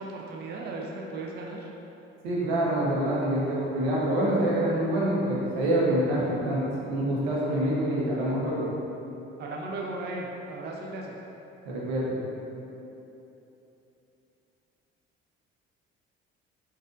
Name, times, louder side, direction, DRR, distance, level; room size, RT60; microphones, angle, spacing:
voice 1, 0.0-1.7 9.4-11.2, right 2 dB, 35° right, -1 dB, 0.5 m, -36 dB
voice 2, 2.2-8.6 11.7-12.2, right 1 dB, 80° right, -5 dB, 0.8 m, -26 dB
4.0 x 2.5 x 2.5 m, 3.0 s
hypercardioid pair, 60°, 30 cm